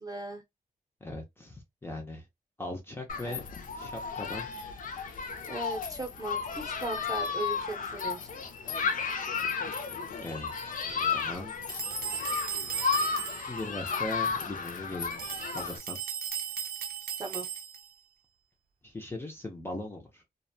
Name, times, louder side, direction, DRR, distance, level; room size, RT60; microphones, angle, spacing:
voice 1, 0.0-0.4 5.5-8.4 17.2-17.5, right 2 dB, 25° right, 0.7 m, -37 dB
voice 2, 1.0-2.2 2.6-3.4 3.8-4.5 10.2-11.5 13.5-15.2 15.5-16.0 18.8-20.2, left 1 dB, 15° left, 0.5 m, -39 dB
Human group actions, 3.1-15.8, left 5 dB, 65° left, 0.5 m, -33 dB
sound 1, 11.7-13.7 15.1-18.0, right 8 dB, 75° right, 0.5 m, -36 dB
2.5 x 2.1 x 2.6 m
wide cardioid pair, 145°, 15 cm